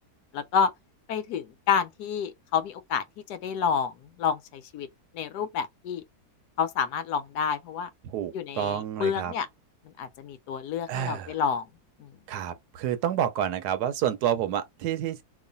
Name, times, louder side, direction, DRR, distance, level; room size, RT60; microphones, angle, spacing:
voice 1, 0.3-0.7 1.1-3.0 3.3-4.9 5.1-6.0 6.6-7.9 8.3-9.5 10.0-11.7 12.0-12.1, left 7 dB, 85° left, 1.2 m, -29 dB
voice 2, 8.0-9.3 10.9-11.4 12.3-15.2, right 10 dB, 80° right, 1.2 m, -29 dB
3.1 x 2.4 x 3.9 m
omnidirectional pair, 1.7 m